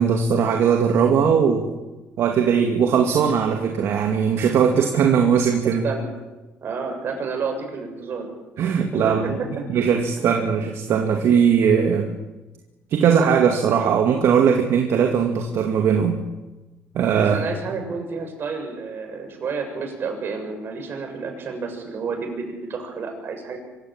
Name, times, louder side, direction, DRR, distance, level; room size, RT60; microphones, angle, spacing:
voice 1, 0.0-1.7 2.2-5.8 8.6-9.4 9.7-12.1 12.9-16.2 16.9-17.4, right 7 dB, 65° right, 3 dB, 2.3 m, -19 dB
voice 2, 5.6-6.1 6.6-8.3 8.9-9.5 17.2-23.6, right 4 dB, 50° right, 3 dB, 6.9 m, -30 dB
24.5 x 15.5 x 8.9 m, 1.1 s
cardioid pair, 115°, 5 cm